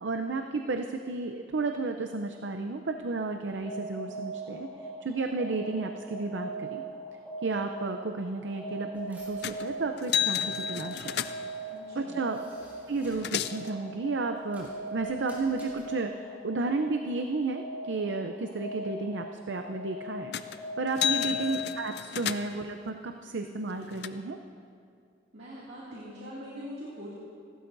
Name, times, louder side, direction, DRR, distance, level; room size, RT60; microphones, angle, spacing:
voice 1, 0.0-4.7 5.0-6.8 7.4-11.2 12.0-12.4 12.9-24.4, right 3 dB, 80° right, 5 dB, 0.6 m, -32 dB
sound 1, 3.5-22.0, right 1 dB, 10° left, 2.7 m, -40 dB
sound 2, 8.9-13.4 13.8-16.4, equal, 10° right, 4.1 m, -57 dB
sound 3, 9.4-9.7 10.0-11.6 12.6-12.7 12.9-13.7 20.3-20.6 20.9-22.7 23.4-24.1, left 9 dB, 60° left, 0.4 m, -32 dB
voice 2, 11.7-12.2 21.0-21.3 25.3-27.1, equal, 65° right, -8 dB, 2.4 m, -43 dB
28.0 x 12.5 x 2.6 m, 2.3 s
head